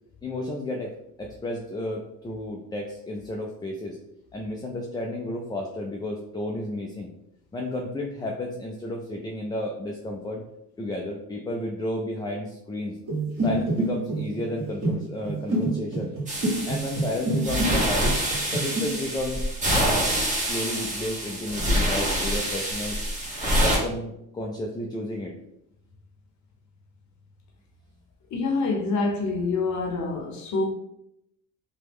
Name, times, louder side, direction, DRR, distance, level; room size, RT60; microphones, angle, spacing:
voice 1, 0.2-0.9 1.2-4.0 4.3-7.1 7.5-10.4 10.8-13.0 13.4-16.1 16.7-18.2 18.5-19.4 20.3-23.0 23.6-25.3, left 1 dB, 15° left, 0.4 m, -32 dB
sound 1, 13.0-17.7 18.0-18.8, right 2 dB, 40° right, 1.5 m, -28 dB
sound 2, 16.3-23.8, equal, 20° right, 1.2 m, -26 dB
voice 2, 28.3-30.6, left 3 dB, 55° left, 0.8 m, -26 dB
3.0 x 2.2 x 3.4 m
supercardioid pair, 85°, 34 cm